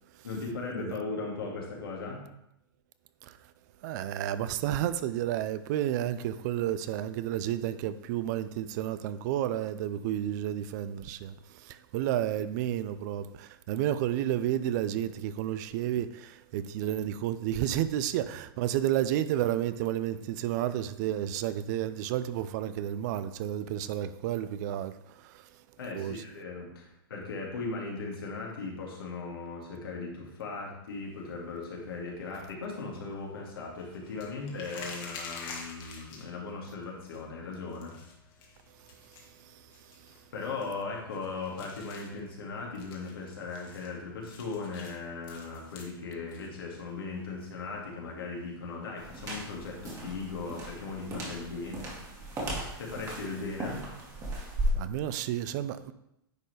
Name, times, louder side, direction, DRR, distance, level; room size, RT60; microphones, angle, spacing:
voice 1, 0.2-2.3 25.8-37.9 40.3-51.9 52.8-53.8, left 4 dB, 80° left, 2.1 m, -38 dB
voice 2, 3.8-25.5 25.9-26.2 39.4-39.6 40.0-40.1 54.7-55.9, right 11 dB, 50° right, 0.5 m, -31 dB
sound 1, 30.9-49.4, left 4 dB, 40° left, 1.7 m, -50 dB
sound 2, 49.0-54.7, right 1 dB, 25° right, 2.1 m, -36 dB
9.6 x 4.4 x 3.3 m
hypercardioid pair, 115°, 12 cm